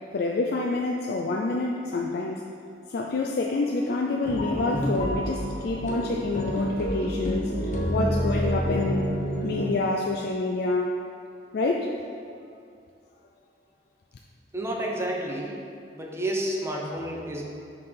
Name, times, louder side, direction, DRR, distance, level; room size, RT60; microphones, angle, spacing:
voice 1, 0.1-2.4 2.9-9.1 9.4-11.0 11.5-11.9, left 3 dB, 60° left, 0 dB, 0.4 m, -27 dB
sound 1, 4.2-9.7, equal, 45° left, 1.0 m, -28 dB
voice 2, 14.5-15.6 15.9-17.4, right 1 dB, 15° right, -1 dB, 0.7 m, -30 dB
5.3 x 4.2 x 5.7 m, 2.4 s
head